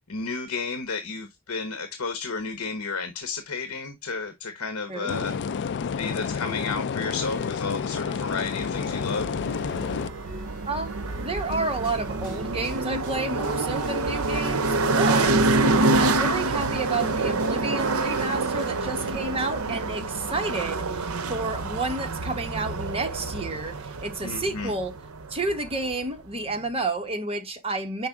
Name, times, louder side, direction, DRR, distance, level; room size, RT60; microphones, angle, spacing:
voice 1, 0.1-5.3 6.0-9.4 15.2-15.4 24.2-24.7, left 4 dB, 70° left, 1.1 m, -32 dB
voice 2, 4.9-5.5 10.7-15.3 16.0-24.9 25.3-28.1, right 2 dB, 25° right, 1.2 m, -30 dB
sound 1, 5.1-10.1, left 6 dB, 55° left, 0.4 m, -30 dB
sound 2, 6.5-19.5, right 1 dB, 40° right, 3.0 m, -45 dB
sound 3, 8.6-26.0, right 3 dB, 70° right, 0.7 m, -27 dB
6.0 x 4.6 x 3.6 m
head